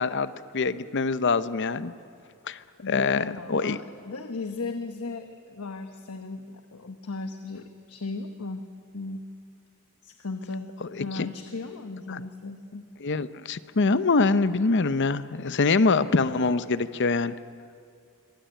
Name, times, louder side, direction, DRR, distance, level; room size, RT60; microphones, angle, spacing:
voice 1, 0.0-1.9 2.5-2.6 2.9-3.8 10.8-10.9 12.1-12.2 13.0-17.3, left 4 dB, 55° left, 14 dB, 0.7 m, -24 dB
voice 2, 2.8-8.6 8.9-9.2 10.0-10.7 11.0-12.8, left 3 dB, 90° left, 7 dB, 1.1 m, -36 dB
24.5 x 16.0 x 9.1 m, 2.4 s
head